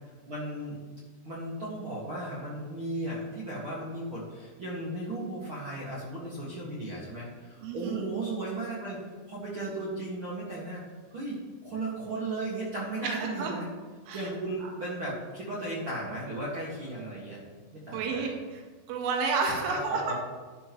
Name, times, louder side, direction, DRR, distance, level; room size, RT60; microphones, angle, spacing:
voice 1, 0.3-0.8 1.2-9.0 9.3-10.8 11.1-13.7 14.1-17.4 17.7-18.3 19.5-20.1, right 2 dB, 65° right, -6 dB, 1.3 m, -35 dB
voice 2, 7.6-8.0 13.0-13.5 14.1-14.3 14.6-14.7 17.9-20.1, right 4 dB, 85° right, 1 dB, 3.9 m, -31 dB
11.5 x 11.5 x 3.1 m, 1.4 s
omnidirectional pair, 5.6 m